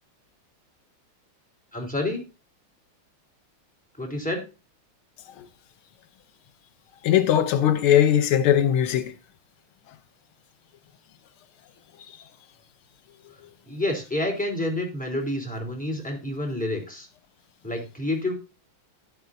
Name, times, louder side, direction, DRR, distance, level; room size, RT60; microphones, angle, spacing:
voice 1, 1.7-2.2 4.0-4.4 13.7-17.1 17.6-18.3, left 1 dB, 5° left, 3.8 m, -28 dB
voice 2, 7.0-9.1, left 10 dB, 85° left, 1.7 m, -20 dB
12.0 x 11.0 x 2.7 m
omnidirectional pair, 2.3 m